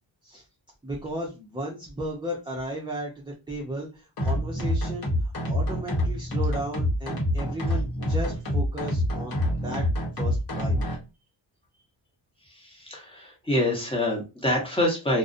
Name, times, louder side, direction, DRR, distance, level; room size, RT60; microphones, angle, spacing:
voice 1, 0.8-9.8 10.2-10.8, right 1 dB, 10° right, -2 dB, 0.5 m, -35 dB
sound 1, 4.2-11.0, left 1 dB, 50° left, 0.9 m, -26 dB
voice 2, 12.5-15.2, left 1 dB, 10° left, -2 dB, 1.0 m, -26 dB
2.5 x 2.1 x 2.4 m, 0.28 s
wide cardioid pair, 105°, 45 cm